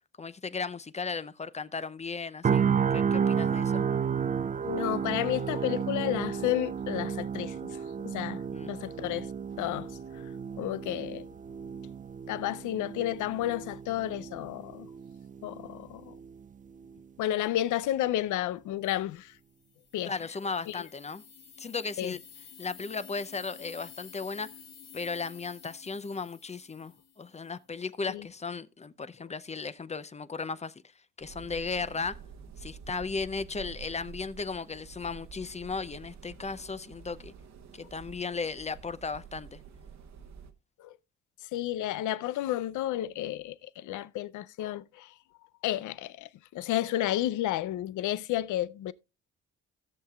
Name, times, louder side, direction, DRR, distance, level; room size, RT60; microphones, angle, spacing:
voice 1, 0.2-2.7 2.9-3.8 8.5-8.7 20.1-21.2 21.6-22.2 22.6-24.5 24.9-30.7 31.2-32.2 32.6-37.3 37.7-39.6, left 4 dB, 20° left, 0.6 m, -36 dB
sound 1, 2.4-16.4 16.8-17.0, right 7 dB, 25° right, 0.4 m, -32 dB
voice 2, 4.6-7.8 8.0-9.3 9.6-10.0 10.6-11.3 12.3-14.9 15.4-16.1 17.2-19.3 19.9-20.1 20.7-20.8 22.0-22.1 28.1-28.3 40.8-40.9 41.4-45.1 45.6-48.9, left 13 dB, 80° left, 0.6 m, -32 dB
sound 2, 19.6-27.5, left 7 dB, 60° left, 1.7 m, -52 dB
sound 3, 31.2-40.5, right 6 dB, 65° right, 1.2 m, -48 dB
16.5 x 6.6 x 2.3 m
cardioid pair, 90°, 30 cm